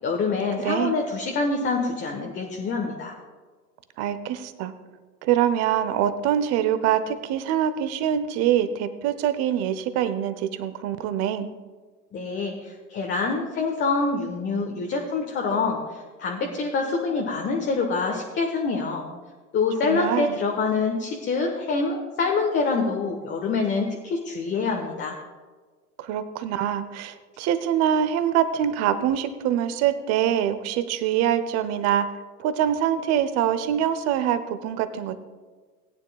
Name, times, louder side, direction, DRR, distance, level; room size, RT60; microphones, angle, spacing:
voice 1, 0.0-3.1 12.1-19.0 19.5-25.2, left 4 dB, 20° left, 1 dB, 1.2 m, -26 dB
voice 2, 0.6-1.0 4.0-4.7 5.2-11.5 19.8-20.4 26.0-32.1 32.4-35.2, right 10 dB, 30° right, 12 dB, 0.8 m, -24 dB
19.0 x 9.6 x 2.3 m, 1.4 s
figure-of-eight pair, 95°, 48 cm